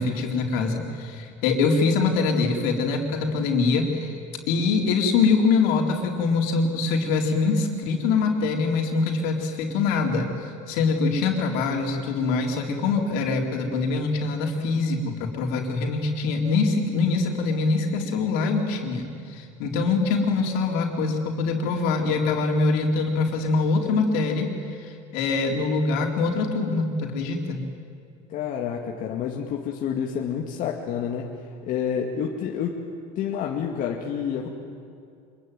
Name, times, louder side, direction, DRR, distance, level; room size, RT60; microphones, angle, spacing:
voice 1, 0.0-4.2 4.5-10.3 10.7-27.6, left 4 dB, 75° left, 1 dB, 4.2 m, -24 dB
voice 2, 28.3-31.3 31.6-32.8 33.2-34.5, left 8 dB, 50° left, 0 dB, 2.2 m, -28 dB
25.5 x 22.5 x 9.4 m, 2.4 s
supercardioid pair, 125°, 17 cm